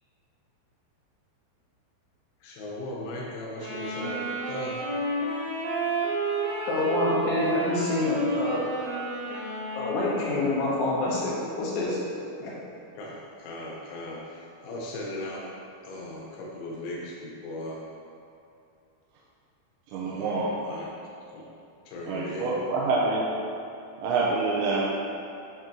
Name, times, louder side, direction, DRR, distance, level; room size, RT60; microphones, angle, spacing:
voice 1, 2.4-4.8 12.9-15.5 15.8-17.8 19.9-20.9 21.3-21.5 21.9-22.6, left 1 dB, 90° left, -4 dB, 3.5 m, -38 dB
Wind instrument woodwind instrument, 3.6-10.5, right 2 dB, 70° right, 2.9 m, -31 dB
voice 2, 6.6-8.6 9.8-12.0 12.4-12.5, left 2 dB, 75° left, -7 dB, 3.0 m, -27 dB
voice 3, 19.9-20.6 22.1-23.3 24.0-24.9, right 3 dB, 85° right, -5 dB, 2.9 m, -26 dB
10.5 x 3.7 x 2.9 m, 2.6 s
omnidirectional pair, 5.4 m